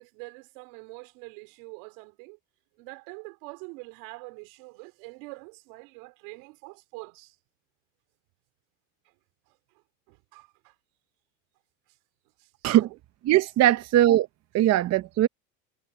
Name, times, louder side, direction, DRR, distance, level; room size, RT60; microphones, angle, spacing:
voice 1, 0.0-2.4 2.8-7.4 9.0-9.1 9.5-9.6 10.1-10.8 11.9-12.0 12.4-13.0 13.6-13.8, right 29 dB, 80° right, 3.7 m, -45 dB
voice 2, 13.3-14.3 14.5-15.3, right 13 dB, 40° right, 0.7 m, -20 dB
supercardioid pair, 125°, 40 cm